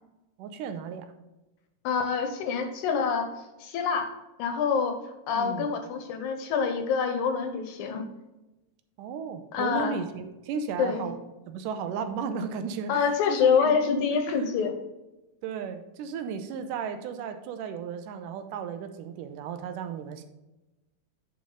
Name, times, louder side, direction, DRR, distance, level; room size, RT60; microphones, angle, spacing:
voice 1, 0.4-1.1 5.4-5.7 9.0-11.2 11.5-13.8 15.4-20.3, right 6 dB, 80° right, 8 dB, 2.2 m, -34 dB
voice 2, 1.8-3.3 3.6-4.1 4.4-5.0 5.3-8.1 9.5-10.0 10.8-11.1 12.9-14.7, left 6 dB, 75° left, 6 dB, 2.1 m, -26 dB
9.9 x 5.2 x 3.8 m, 1.0 s
omnidirectional pair, 3.8 m